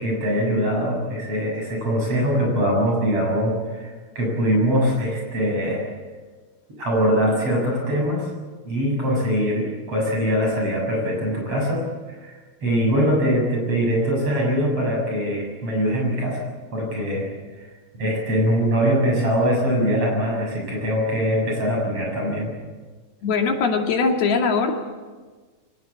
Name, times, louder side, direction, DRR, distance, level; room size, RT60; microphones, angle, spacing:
voice 1, 0.0-5.9 6.8-8.3 8.7-16.4 16.7-17.3 18.0-22.5, equal, 40° right, 0 dB, 8.2 m, -22 dB
voice 2, 23.2-24.7, left 4 dB, 80° left, 2 dB, 4.4 m, -21 dB
23.5 x 19.5 x 8.6 m, 1.4 s
omnidirectional pair, 4.4 m